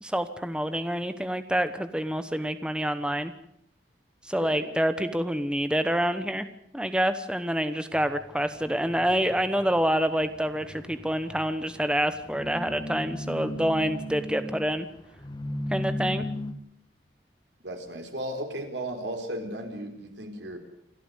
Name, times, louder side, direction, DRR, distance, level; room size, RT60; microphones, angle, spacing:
voice 1, 0.0-3.3 4.2-6.5 6.7-14.9 15.7-16.2, equal, 5° right, 10 dB, 1.0 m, -27 dB
voice 2, 4.4-4.7 17.6-20.6, right 1 dB, 85° right, 5 dB, 4.2 m, -35 dB
sound 1, 7.9-16.5, left 1 dB, 25° left, 1.9 m, -37 dB
28.0 x 13.0 x 8.1 m, 0.74 s
head